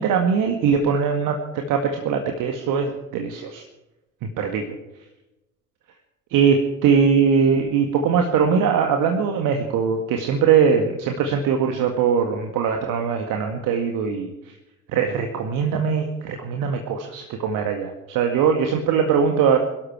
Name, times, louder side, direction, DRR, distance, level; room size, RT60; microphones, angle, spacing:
voice 1, 0.0-3.6 4.2-4.8 6.3-14.3 14.9-19.6, right 6 dB, 55° right, 4 dB, 2.0 m, -21 dB
23.0 x 12.5 x 4.7 m, 0.98 s
figure-of-eight pair, 55°, 40 cm